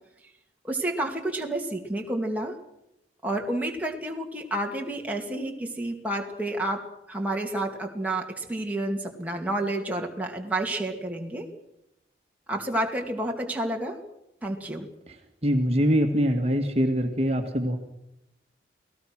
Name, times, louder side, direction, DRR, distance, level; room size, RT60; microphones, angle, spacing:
voice 1, 0.6-2.6 3.2-11.5 12.5-14.0 14.4-14.9, right 1 dB, 10° right, 0 dB, 2.4 m, -30 dB
voice 2, 15.4-17.8, equal, 35° right, 3 dB, 2.0 m, -23 dB
29.0 x 19.0 x 6.2 m, 0.84 s
head